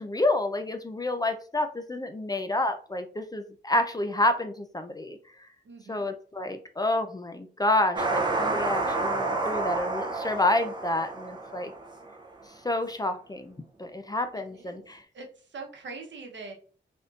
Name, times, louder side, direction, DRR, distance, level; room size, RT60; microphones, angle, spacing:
voice 1, 0.0-5.2 5.9-11.7 12.6-15.0, left 2 dB, 20° left, 7 dB, 0.4 m, -29 dB
voice 2, 5.6-6.1 14.5-14.8 15.1-16.5, right 3 dB, 75° right, 2 dB, 0.8 m, -42 dB
sound 1, 8.0-12.2, right 3 dB, 25° right, 0.6 m, -29 dB
3.5 x 2.6 x 2.4 m, 0.40 s
wide cardioid pair, 90°, 19 cm